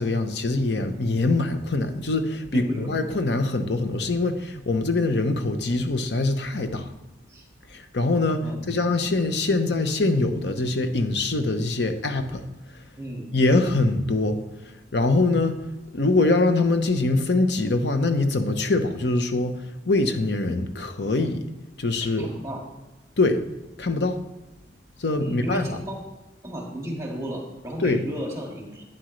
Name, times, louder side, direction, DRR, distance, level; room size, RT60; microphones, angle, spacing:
voice 1, 0.0-6.9 7.7-12.4 13.3-14.4 14.9-15.6 15.9-19.6 19.9-21.4 21.8-22.3 23.2-23.4 23.8-24.2 25.0-25.7 27.8-28.0, left 2 dB, 70° left, 8 dB, 0.9 m, -23 dB
voice 2, 2.5-3.1 7.3-7.4 8.4-8.6 13.0-13.3 22.0-22.7 25.2-26.0 26.4-28.8, equal, 15° right, -1 dB, 2.0 m, -33 dB
11.5 x 9.3 x 3.2 m, 1.1 s
head